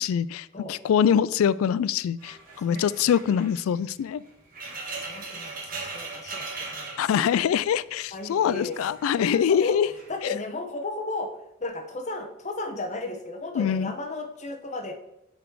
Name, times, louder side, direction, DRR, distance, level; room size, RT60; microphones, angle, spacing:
voice 1, 0.0-4.2 7.0-9.9 10.2-10.3 13.6-13.9, left 8 dB, 80° left, 17 dB, 0.3 m, -24 dB
sound 1, 2.2-7.8 8.1-9.2 9.8-10.2, right 3 dB, 40° right, 1.8 m, -39 dB
voice 2, 2.6-3.1 5.0-7.0 8.1-8.8 9.2-9.8 10.1-11.3 11.6-14.9, left 2 dB, 35° left, 4 dB, 1.0 m, -34 dB
8.1 x 4.0 x 4.6 m, 0.82 s
head